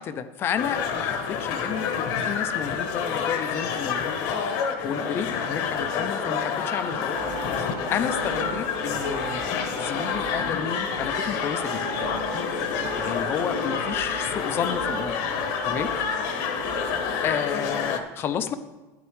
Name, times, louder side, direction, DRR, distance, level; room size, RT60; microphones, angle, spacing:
voice 1, 0.0-4.6 4.8-7.2 7.6-9.4 9.8-11.8 13.0-15.1 15.7-15.9 17.2-18.5, left 8 dB, 30° left, 11 dB, 0.5 m, -31 dB
sound 1, 0.6-18.0, left 6 dB, 50° left, 1.0 m, -28 dB
sound 2, 6.9-17.5, right 5 dB, 65° right, 2.1 m, -38 dB
12.5 x 9.5 x 3.2 m, 1.2 s
supercardioid pair, 160°, 8 cm